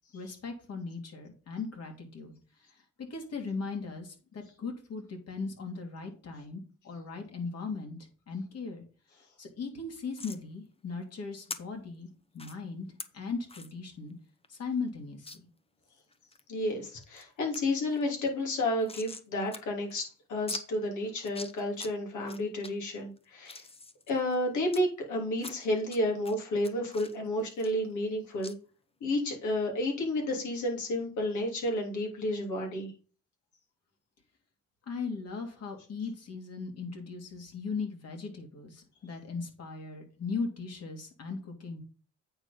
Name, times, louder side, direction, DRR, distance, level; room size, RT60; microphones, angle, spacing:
voice 1, 0.1-2.3 2.7-8.8 9.4-12.1 12.3-12.9 13.1-14.1 14.5-15.3 34.9-41.8, left 4 dB, 55° left, 3 dB, 2.9 m, -38 dB
sound 1, 10.2-10.4 11.5-11.6 12.4-12.5 13.0-13.1 13.5-13.7 14.1-14.2 14.4-14.5 15.3-15.4 15.9-16.4 16.9-17.2 17.5-17.6 17.9-19.3 19.5-19.6 19.9-20.0 20.5-20.6 21.2-21.9 22.3-22.7 23.2-24.8 25.4-26.0 26.2-28.1 28.4-28.5, left 3 dB, 20° left, 0.9 m, -43 dB
voice 2, 16.5-23.6 24.1-28.5 29.0-32.9, left 1 dB, 75° left, 0 dB, 3.3 m, -31 dB
8.7 x 4.6 x 5.3 m, 0.38 s
cardioid pair, 90°, 30 cm